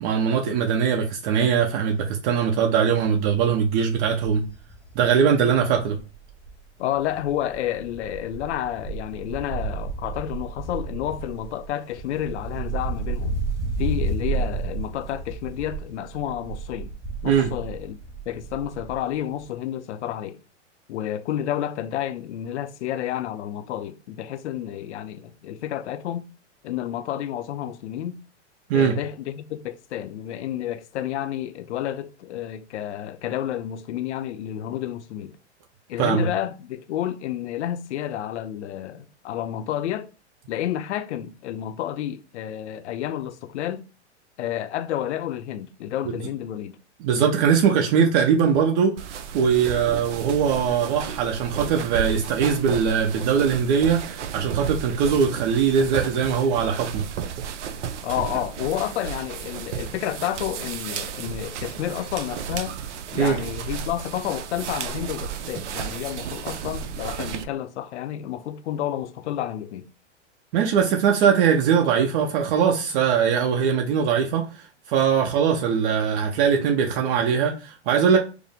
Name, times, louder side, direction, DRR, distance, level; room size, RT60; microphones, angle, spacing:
voice 1, 0.0-4.4 4.9-6.0 17.2-17.5 28.7-28.9 36.0-36.3 47.0-49.0 49.3-57.0 63.2-63.4 70.5-78.2, right 7 dB, 50° right, 0.7 m, -21 dB
Wind, 3.1-6.7 6.9-19.1 19.4-19.5, right 3 dB, 10° right, 1.3 m, -32 dB
voice 2, 6.8-13.4 13.8-16.9 17.2-18.0 18.3-20.4 20.9-26.3 26.6-28.2 28.7-35.4 35.9-40.1 40.5-43.8 44.4-46.8 58.0-62.7 63.1-69.9, left 11 dB, 70° left, 0.6 m, -30 dB
sound 1, 49.0-67.4, right 7 dB, 80° right, 0.6 m, -33 dB
4.9 x 2.0 x 3.5 m
hypercardioid pair, 115°, 35 cm